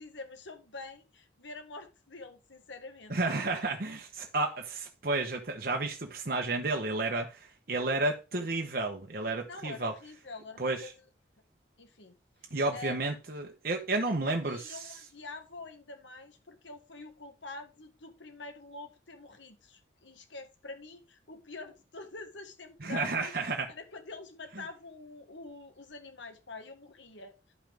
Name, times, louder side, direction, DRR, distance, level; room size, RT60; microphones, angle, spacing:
voice 1, 0.0-3.2 9.5-11.0 11.8-12.2 12.7-13.1 14.2-23.3 23.7-27.5, left 3 dB, 80° left, 1.6 m, -46 dB
voice 2, 3.1-9.9 10.6-10.9 12.5-14.8 22.8-23.7, right 2 dB, 50° right, 1.1 m, -31 dB
12.0 x 5.7 x 3.5 m
head